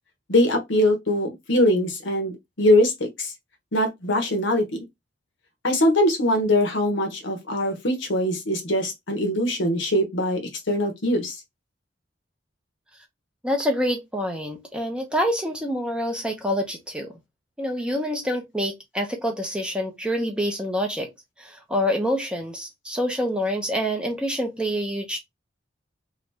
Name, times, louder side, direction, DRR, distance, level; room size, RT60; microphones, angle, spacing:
voice 1, 0.3-3.3 3.7-4.8 5.6-11.3, left 1 dB, 70° left, 1.0 m, -22 dB
voice 2, 13.4-17.1 17.6-21.1 21.4-25.2, equal, 5° right, 0.7 m, -26 dB
3.0 x 2.6 x 3.3 m
head